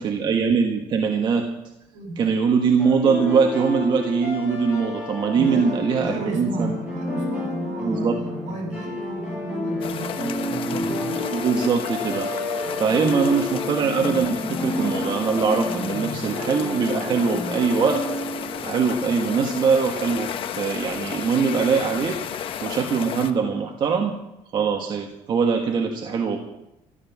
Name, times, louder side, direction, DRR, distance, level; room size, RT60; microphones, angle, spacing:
voice 1, 0.0-1.5 2.2-6.7 7.8-8.2 11.3-12.3 12.8-18.0 18.6-22.2 22.6-24.2 24.5-26.4, right 5 dB, 40° right, 3 dB, 1.5 m, -22 dB
voice 2, 1.9-2.4 5.3-11.2 12.6-13.1, right 2 dB, 75° right, 1 dB, 7.7 m, -33 dB
sound 1, 2.8-19.7, left 2 dB, 10° right, 6.7 m, -31 dB
sound 2, 9.8-23.3, left 9 dB, 45° left, 1.0 m, -33 dB
14.0 x 12.0 x 7.4 m, 0.90 s
cardioid pair, 155°, 12 cm